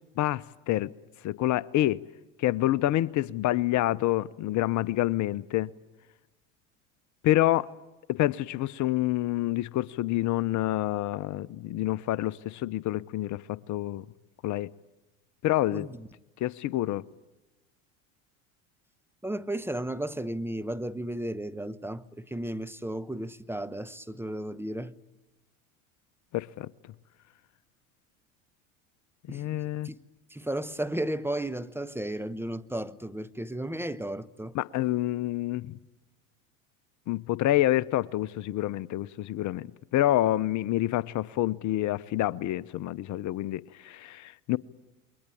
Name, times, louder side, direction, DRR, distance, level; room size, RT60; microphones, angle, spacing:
voice 1, 0.2-0.9 1.2-2.0 2.4-5.7 7.2-7.7 8.1-14.0 14.4-14.7 15.4-15.9 16.4-17.0 26.3-26.7 29.3-29.9 34.5-35.8 37.1-44.6, left 15 dB, 45° left, 0.8 m, -27 dB
voice 2, 15.7-16.1 19.2-24.9 29.3-29.6 29.8-30.0 30.3-34.6, right 1 dB, 5° right, 1.0 m, -34 dB
28.5 x 22.5 x 8.5 m
hypercardioid pair, 85°, 40 cm